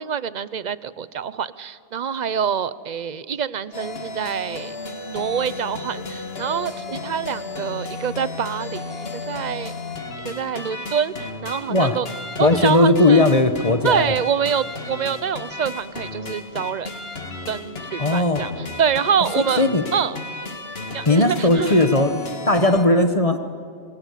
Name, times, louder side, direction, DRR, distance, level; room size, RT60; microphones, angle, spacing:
voice 1, 0.0-4.7 5.1-9.7 10.2-12.1 12.4-13.2 13.8-16.9 17.5-20.2 20.9-21.9, right 7 dB, 45° right, 16 dB, 0.8 m, -26 dB
sound 1, 3.7-22.9, left 3 dB, 70° left, 2.0 m, -34 dB
voice 2, 12.4-14.2 18.0-18.5 19.6-19.8 21.1-23.4, left 2 dB, 35° left, 8 dB, 1.2 m, -17 dB
27.5 x 22.0 x 8.4 m, 2.3 s
omnidirectional pair, 1.1 m